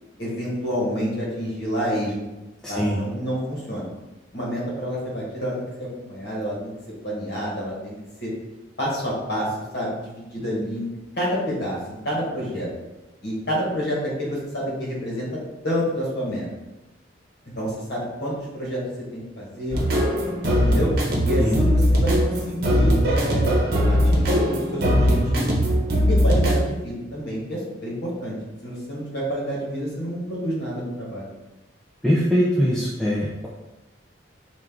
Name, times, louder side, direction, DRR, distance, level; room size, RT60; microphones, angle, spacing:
voice 1, 0.2-2.3 2.7-3.9 4.3-6.7 7.0-7.9 8.2-8.3 8.8-10.9 11.2-11.8 12.0-12.7 13.2-15.3 15.6-16.5 17.6-18.8 19.1-20.1 20.5-20.9 21.2-23.6 23.9-25.6 25.9-28.4 28.6-31.3, equal, 60° left, -4 dB, 1.4 m, -28 dB
sound 1, 19.7-26.7, equal, 50° right, 0.9 m, -20 dB
voice 2, 32.0-33.5, equal, 5° left, -6 dB, 0.4 m, -21 dB
4.3 x 2.5 x 3.6 m, 1.0 s
head